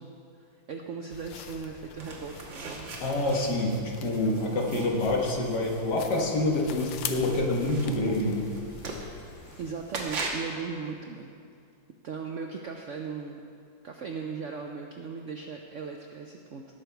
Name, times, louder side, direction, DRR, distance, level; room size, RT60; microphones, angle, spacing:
voice 1, 0.0-2.9 9.6-11.3 12.0-13.4 13.8-16.7, right 5 dB, 70° right, 2 dB, 0.7 m, -38 dB
sound 1, 1.1-9.7, left 8 dB, 85° left, 1.4 m, -43 dB
sound 2, 2.0-10.5, right 3 dB, 85° right, 2.1 m, -41 dB
voice 2, 3.0-8.5, left 2 dB, 65° left, -1 dB, 2.0 m, -27 dB
18.0 x 6.7 x 4.6 m, 2.4 s
omnidirectional pair, 2.0 m